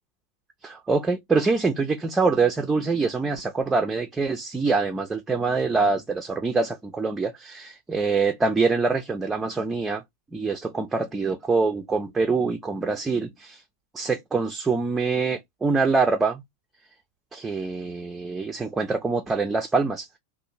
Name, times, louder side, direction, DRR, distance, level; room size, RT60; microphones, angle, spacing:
voice 1, 0.6-10.0 10.3-13.6 13.9-16.4 17.3-20.2, right 4 dB, 10° right, 0.4 m, -25 dB
2.4 x 2.0 x 2.8 m
figure-of-eight pair, 90°, 0 cm